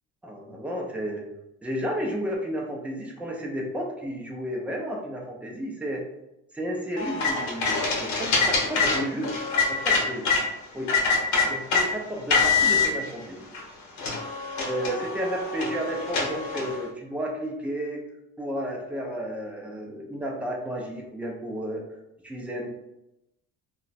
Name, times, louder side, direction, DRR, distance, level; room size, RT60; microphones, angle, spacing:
voice 1, 0.2-1.3 1.6-6.0 6.5-9.3 9.7-10.3 10.7-10.9 11.4-13.5 14.7-18.0 18.4-21.8 22.2-22.7, equal, 5° right, -1 dB, 0.4 m, -32 dB
sound 1, 7.0-10.4 10.9-11.9 12.3-12.9 13.6-13.7 14.0-16.8, left 4 dB, 70° left, 0.9 m, -24 dB
2.4 x 2.2 x 3.9 m, 0.89 s
cardioid pair, 145°, 30 cm